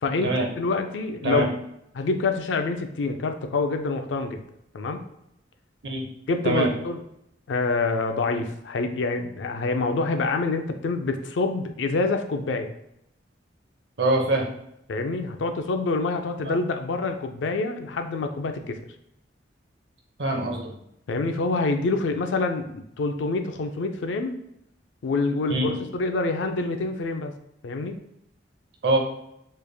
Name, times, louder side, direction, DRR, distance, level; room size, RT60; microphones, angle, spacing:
voice 1, 0.0-1.4 1.9-4.4 4.7-5.0 6.3-7.0 7.5-12.7 14.9-18.8 21.1-24.4 25.0-27.3 27.6-28.0, left 3 dB, 85° left, 6 dB, 0.4 m, -26 dB
voice 2, 14.0-14.4 16.5-16.6 20.2-20.7 25.5-25.7 28.8-29.0, right 2 dB, 70° right, 1 dB, 0.7 m, -23 dB
3.4 x 3.2 x 2.2 m, 0.80 s
head